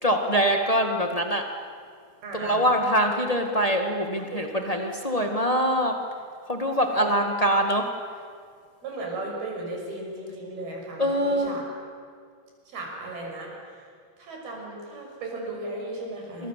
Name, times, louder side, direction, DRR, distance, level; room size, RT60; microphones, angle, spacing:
voice 1, 0.0-1.4 2.3-6.0 6.5-7.9 11.0-11.6 16.4-16.5, equal, 35° left, 3 dB, 0.6 m, -24 dB
voice 2, 2.2-2.7 4.3-4.4 6.8-7.3 8.8-11.6 12.7-13.5 14.2-16.5, right 2 dB, 85° right, 0 dB, 8.3 m, -36 dB
30.0 x 26.5 x 7.6 m, 2.1 s
omnidirectional pair, 4.3 m